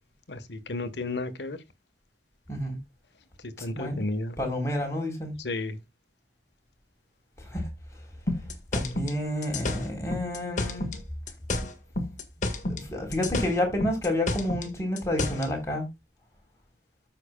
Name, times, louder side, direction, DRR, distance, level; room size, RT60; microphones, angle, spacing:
voice 1, 0.3-1.6 3.4-4.4 5.4-5.8, left 2 dB, 75° left, 1.4 m, -33 dB
voice 2, 4.4-5.4 7.4-7.7 8.7-11.0 12.7-15.9, left 1 dB, 15° left, 3.8 m, -29 dB
sound 1, 8.3-11.0 11.3-12.9 13.1-15.5, left 2 dB, 45° left, 1.7 m, -30 dB
14.0 x 5.9 x 2.3 m
head